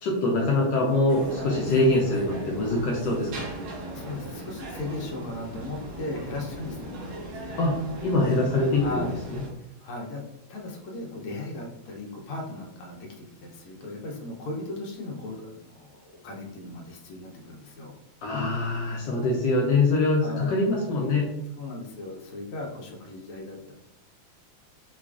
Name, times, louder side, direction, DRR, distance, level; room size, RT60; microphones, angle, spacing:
voice 1, 0.0-3.4 7.6-9.0 9.3-9.4 18.2-21.3, left 2 dB, 70° left, -2 dB, 1.2 m, -24 dB
sound 1, 1.1-9.5, right 1 dB, 75° right, 1.6 m, -38 dB
voice 2, 3.9-7.2 8.8-9.2 9.6-10.2 10.5-18.0 20.2-20.6 21.6-23.7, left 2 dB, 85° left, -1 dB, 1.5 m, -37 dB
4.8 x 2.3 x 2.3 m, 0.85 s
omnidirectional pair, 2.3 m